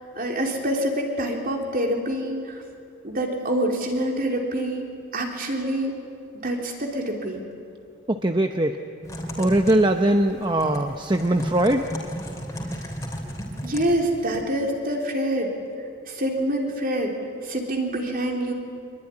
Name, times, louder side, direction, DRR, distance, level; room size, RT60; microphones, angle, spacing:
voice 1, 0.1-2.4 3.0-4.9 5.1-5.9 6.3-7.4 13.6-15.5 16.1-17.1 17.4-18.5, right 1 dB, 45° right, 1 dB, 3.6 m, -26 dB
voice 2, 8.1-8.8 9.4-11.9, right 1 dB, 20° right, 6 dB, 0.8 m, -21 dB
Typing, 9.0-14.4, equal, 15° left, 3.3 m, -34 dB
25.0 x 22.0 x 10.0 m, 2.5 s
head